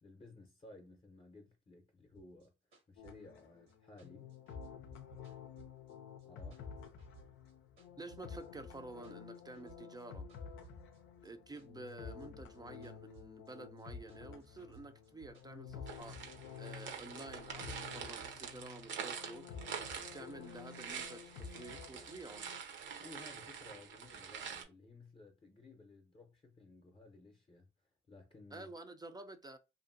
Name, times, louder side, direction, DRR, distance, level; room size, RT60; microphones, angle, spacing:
voice 1, 0.0-2.5 2.9-4.3 6.2-6.7 23.0-27.7 28.1-28.7, left 2 dB, 25° left, 0.7 m, -57 dB
sound 1, 2.1-6.3 6.5-8.5 8.7-10.0 10.3-13.8 14.1-16.0 16.3-18.3, right 5 dB, 85° right, 1.2 m, -62 dB
sound 2, 3.0-22.6, left 7 dB, 85° left, 0.5 m, -51 dB
voice 2, 8.0-10.3 11.2-19.5 19.9-22.5 28.5-29.6, right 2 dB, 20° right, 0.4 m, -51 dB
sound 3, 15.9-24.6, right 7 dB, 65° right, 0.7 m, -46 dB
2.6 x 2.5 x 2.5 m
cardioid pair, 90°, 20 cm